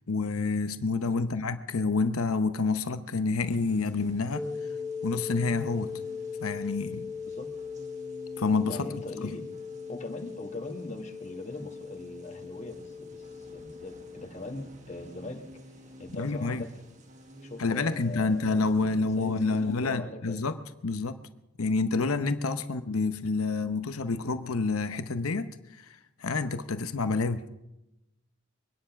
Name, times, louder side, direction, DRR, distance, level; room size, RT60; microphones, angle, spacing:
voice 1, 0.1-4.5 5.0-5.9 6.4-7.1 8.4-8.8 9.2-9.3 16.2-16.6 17.6-20.6 20.8-21.2 21.6-25.5 25.8-27.4, left 3 dB, 90° left, 0.9 m, -28 dB
sound 1, 3.4-19.9, equal, 35° right, 1.4 m, -52 dB
sound 2, 4.3-14.3, left 5 dB, 10° left, 0.8 m, -39 dB
voice 2, 8.6-9.5 9.9-15.5 16.0-16.7 17.4-20.4 22.6-22.7, left 2 dB, 35° left, 1.5 m, -41 dB
23.5 x 10.0 x 5.9 m
head